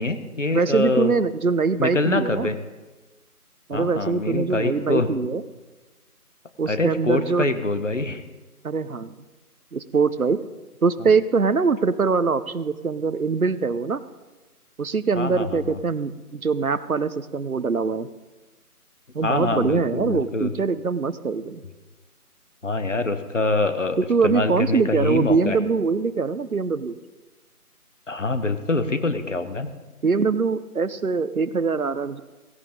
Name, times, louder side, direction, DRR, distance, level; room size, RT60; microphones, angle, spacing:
voice 1, 0.0-1.1 1.8-2.6 3.7-5.1 6.7-8.2 15.2-15.8 19.2-20.5 22.6-24.0 24.2-25.6 28.1-29.7, left 3 dB, 55° left, 9 dB, 1.2 m, -25 dB
voice 2, 0.5-2.5 3.7-5.4 6.6-7.5 8.6-9.1 9.7-10.4 10.8-14.0 14.8-18.1 19.1-21.6 24.1-26.9 30.0-32.2, right 4 dB, 65° right, 14 dB, 0.8 m, -23 dB
16.0 x 16.0 x 3.7 m, 1.2 s
figure-of-eight pair, 165°, 46 cm